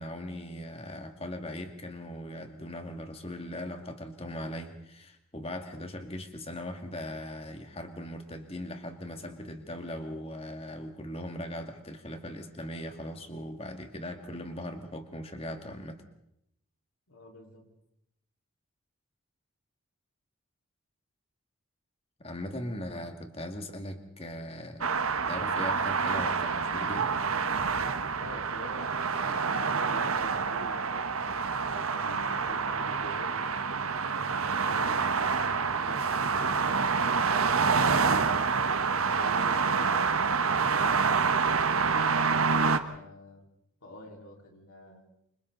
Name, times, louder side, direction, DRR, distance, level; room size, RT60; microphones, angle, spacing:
voice 1, 0.0-16.0 22.2-24.9 25.3-27.1, left 1 dB, 25° left, 5 dB, 2.3 m, -39 dB
voice 2, 17.1-17.6 28.2-31.1 31.7-33.4 34.2-38.5 39.1-42.1 42.8-43.4 43.8-45.0, left 1 dB, 80° left, 1 dB, 4.8 m, -48 dB
sound 1, 24.8-42.8, right 5 dB, 75° right, 1.4 m, -27 dB
28.5 x 26.0 x 4.1 m, 0.77 s
head